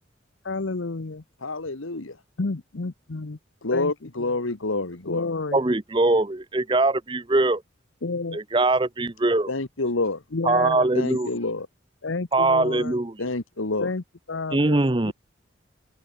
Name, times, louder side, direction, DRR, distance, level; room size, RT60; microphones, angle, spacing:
voice 1, 0.4-1.2 2.4-3.4 3.7-4.3 5.0-5.6 8.0-8.4 10.3-10.9 12.0-12.9 13.8-15.1, left 3 dB, 70° left, 0.9 m, -30 dB
voice 2, 1.4-2.2 3.6-5.3 9.5-10.2 10.9-11.7 13.2-13.9, left 2 dB, 90° left, 1.7 m, -28 dB
voice 3, 5.5-7.6 8.3-9.5 10.4-11.3 12.3-13.1 14.5-15.1, right 2 dB, 25° right, 0.7 m, -22 dB
open air
head